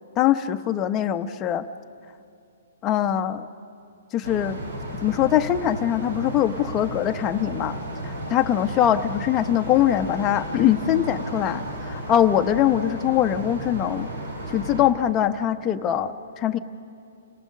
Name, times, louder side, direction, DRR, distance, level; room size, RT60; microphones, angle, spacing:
voice 1, 0.2-1.6 2.8-3.5 4.1-4.6 5.0-7.8 8.0-14.1 14.5-16.6, left 11 dB, 20° left, 7 dB, 0.8 m, -22 dB
sound 1, 4.2-14.9, right 1 dB, 80° right, 4.8 m, -34 dB
29.5 x 18.5 x 6.5 m, 2.5 s
hypercardioid pair, 150°, 0 cm